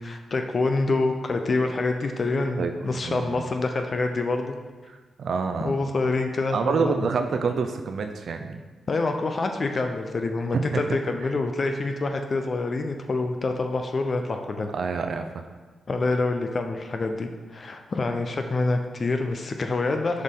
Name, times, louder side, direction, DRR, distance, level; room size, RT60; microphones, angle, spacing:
voice 1, 0.0-4.5 5.6-6.9 8.9-14.7 15.9-20.2, left 3 dB, 45° left, 5 dB, 0.5 m, -26 dB
voice 2, 2.6-3.5 4.9-5.7 6.5-8.6 10.5-10.8 14.7-15.4, right 5 dB, 70° right, 6 dB, 0.4 m, -27 dB
6.3 x 5.3 x 3.7 m, 1.3 s
cardioid pair, 70°, 0 cm